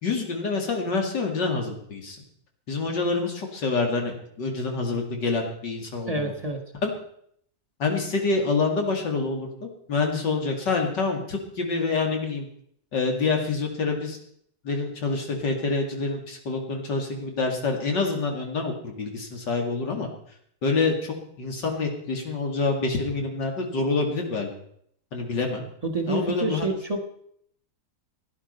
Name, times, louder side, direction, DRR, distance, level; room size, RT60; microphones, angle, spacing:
voice 1, 0.0-2.2 2.7-6.3 6.8-6.9 7.8-12.5 12.9-14.2 14.6-20.1 20.6-24.5 25.1-25.6 26.1-26.6, left 3 dB, 85° left, 2 dB, 3.0 m, -27 dB
voice 2, 6.1-6.6 25.8-27.0, right 2 dB, 20° right, 3 dB, 1.7 m, -28 dB
16.5 x 10.0 x 5.5 m, 0.68 s
omnidirectional pair, 1.9 m